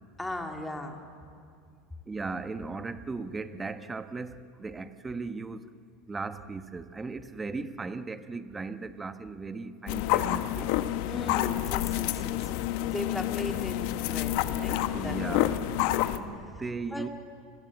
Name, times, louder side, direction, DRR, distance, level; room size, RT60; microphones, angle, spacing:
voice 1, 0.2-1.0 11.1-15.2 15.8-16.2 16.9-17.1, left 1 dB, 5° left, 3 dB, 2.4 m, -38 dB
voice 2, 2.1-5.6 6.1-10.8 14.9-15.7 16.2-17.1, right 4 dB, 15° right, 11 dB, 1.0 m, -37 dB
sound 1, 9.9-16.2, left 13 dB, 65° left, 1.2 m, -28 dB
29.0 x 21.0 x 8.4 m, 2.3 s
supercardioid pair, 135°, 0 cm